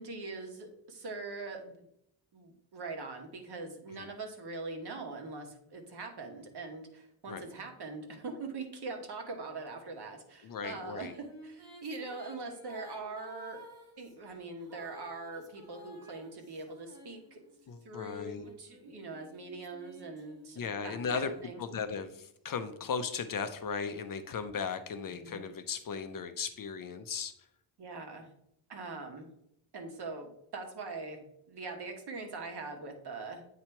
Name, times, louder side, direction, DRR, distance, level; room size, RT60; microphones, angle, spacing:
voice 1, 0.0-1.9 2.3-13.6 14.0-17.4 17.8-21.6 25.2-25.5 27.8-28.3 28.7-29.3 29.7-33.4, right 3 dB, 55° right, 3 dB, 1.3 m, -42 dB
voice 2, 10.4-11.1 17.7-18.5 20.6-21.3 21.6-27.3, left 5 dB, 45° left, 9 dB, 0.5 m, -36 dB
Female singing, 10.8-17.7 18.4-22.1, equal, 5° right, 1.7 m, -54 dB
8.4 x 2.9 x 4.4 m, 0.76 s
wide cardioid pair, 145°, 47 cm